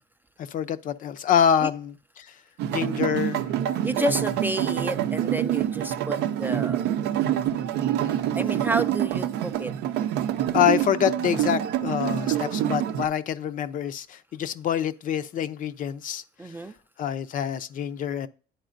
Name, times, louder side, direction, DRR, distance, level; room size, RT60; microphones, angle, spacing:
voice 1, 0.4-2.3 2.7-3.4 3.8-3.9 10.5-16.5 17.0-18.3, left 9 dB, 50° left, 0.5 m, -26 dB
sound 1, 2.6-13.0, right 11 dB, 80° right, 0.5 m, -26 dB
voice 2, 3.8-6.8 8.4-9.7 16.4-16.7, right 1 dB, 10° right, 0.3 m, -30 dB
10.5 x 4.2 x 2.5 m
cardioid pair, 110°, 17 cm